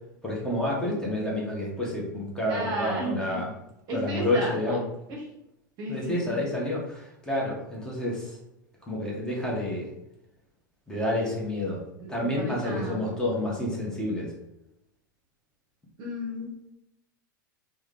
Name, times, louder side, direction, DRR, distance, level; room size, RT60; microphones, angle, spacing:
voice 1, 0.2-3.5 3.9-4.9 5.9-8.4 8.8-9.9 10.9-11.8 12.1-14.3, left 1 dB, 5° left, -4 dB, 1.0 m, -29 dB
voice 2, 2.4-3.4 3.9-4.5 5.8-6.4 12.4-13.0 16.0-16.5, right 1 dB, 40° right, 0 dB, 0.9 m, -32 dB
3.5 x 2.2 x 3.3 m, 0.84 s
figure-of-eight pair, 90°, 11 cm